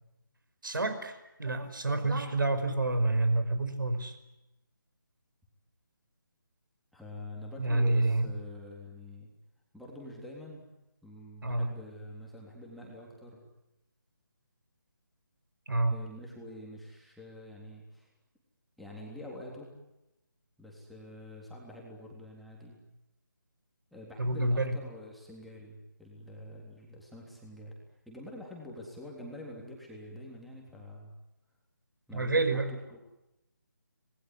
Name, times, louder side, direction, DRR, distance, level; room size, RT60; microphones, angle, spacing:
voice 1, 0.6-4.1 7.6-8.3 11.4-11.7 15.7-16.0 24.2-24.8 32.1-32.7, right 2 dB, 75° right, 10 dB, 5.3 m, -28 dB
voice 2, 6.9-9.3 9.7-10.7 11.0-13.4 15.9-18.1 18.8-19.7 20.6-22.8 23.9-27.7 28.1-31.1 32.1-33.0, left 1 dB, ahead, -3 dB, 3.6 m, -46 dB
26.5 x 20.5 x 9.8 m, 0.91 s
figure-of-eight pair, 165°, 11 cm